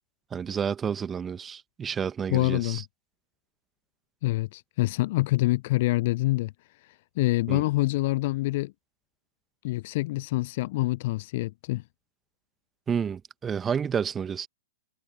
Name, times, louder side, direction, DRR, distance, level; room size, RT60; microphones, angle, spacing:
voice 1, 0.3-2.8 7.5-7.6 12.9-14.5, right 7 dB, 15° right, 1.4 m, -30 dB
voice 2, 2.3-2.8 4.2-6.5 7.2-8.7 9.6-11.8, left 19 dB, 45° left, 0.5 m, -26 dB
figure-of-eight pair, 110°, 0 cm